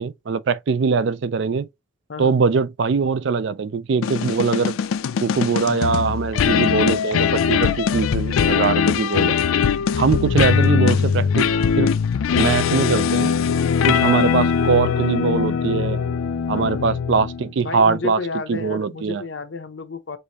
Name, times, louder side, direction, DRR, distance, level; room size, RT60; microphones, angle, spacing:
voice 1, 0.0-1.7 2.2-4.7 5.2-9.4 10.0-11.9 12.4-13.3 13.9-16.0 16.5-18.2 18.5-19.2, right 5 dB, 55° right, 0.4 m, -22 dB
voice 2, 2.1-2.4 16.5-16.9 17.6-20.2, left 3 dB, 60° left, 0.7 m, -31 dB
sound 1, 4.0-17.5, left 6 dB, 80° left, 0.4 m, -21 dB
6.7 x 2.6 x 2.9 m
head